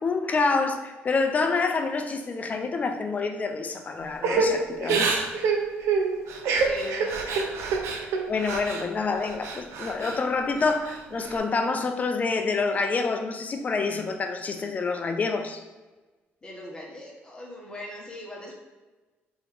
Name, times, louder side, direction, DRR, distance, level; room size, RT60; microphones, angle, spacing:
voice 1, 0.0-5.2 8.3-15.6, left 4 dB, 35° left, 5 dB, 0.5 m, -27 dB
Crying sobbing / Breathing, 4.2-8.8 9.2-10.2 10.6-11.3, right 4 dB, 80° right, 0.6 m, -27 dB
voice 2, 6.6-7.6 16.4-18.6, left 1 dB, 20° left, -2 dB, 1.1 m, -40 dB
3.6 x 3.0 x 3.4 m, 1.2 s
cardioid pair, 90°, 5 cm